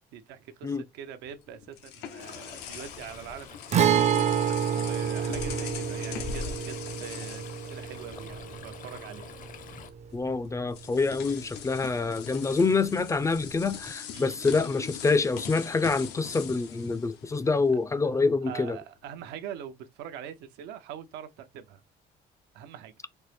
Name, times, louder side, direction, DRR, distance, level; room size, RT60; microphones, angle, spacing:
voice 1, 0.1-9.3 14.1-14.4 18.0-21.8 22.5-22.9, right 9 dB, 90° right, 0.7 m, -43 dB
sound 1, 1.3-8.5 8.8-9.0 10.1-10.2 10.7-17.8, left 9 dB, 90° left, 0.7 m, -42 dB
Stream, 2.2-9.9, left 5 dB, 50° left, 0.7 m, -44 dB
Guitar, 3.7-11.3 11.6-11.7 13.7-13.8, right 8 dB, 40° right, 0.5 m, -29 dB
voice 2, 10.1-18.8, left 4 dB, 20° left, 0.3 m, -26 dB
4.3 x 2.0 x 3.2 m
cardioid pair, 110°, 17 cm